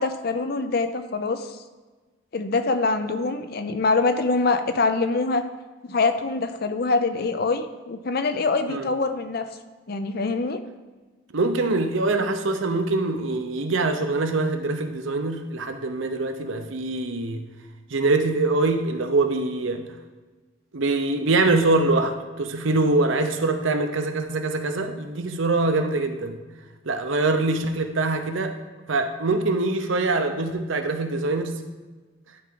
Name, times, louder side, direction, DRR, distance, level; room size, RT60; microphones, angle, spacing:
voice 1, 0.0-1.5 2.3-5.4 5.8-9.5 9.9-10.6, left 3 dB, 50° left, 9 dB, 0.5 m, -24 dB
voice 2, 11.3-17.4 17.9-19.9 20.7-26.4 26.8-28.5 28.9-31.6, right 2 dB, 70° right, 7 dB, 0.7 m, -24 dB
11.0 x 4.7 x 3.9 m, 1.3 s
head